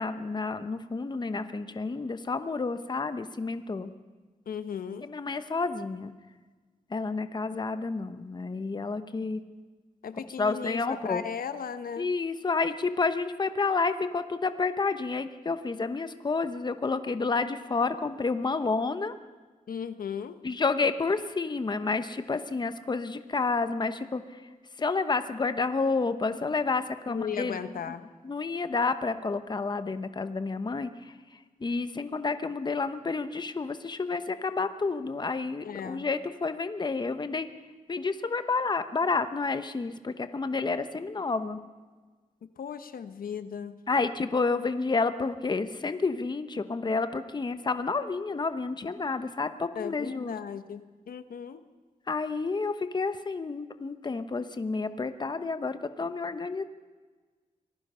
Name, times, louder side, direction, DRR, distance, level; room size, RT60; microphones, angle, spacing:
voice 1, 0.0-3.9 5.0-6.1 6.9-9.4 10.4-11.2 12.0-19.1 20.4-24.2 24.8-27.6 28.2-30.9 31.6-37.5 37.9-41.6 43.9-50.4 52.1-56.6, left 4 dB, 30° left, 10 dB, 1.0 m, -30 dB
voice 2, 4.5-5.1 10.0-12.1 19.7-20.4 27.1-28.0 35.6-36.0 42.6-43.8 49.7-51.6, left 7 dB, 90° left, 10 dB, 1.1 m, -36 dB
25.5 x 19.0 x 5.6 m, 1.4 s
wide cardioid pair, 125°, 14 cm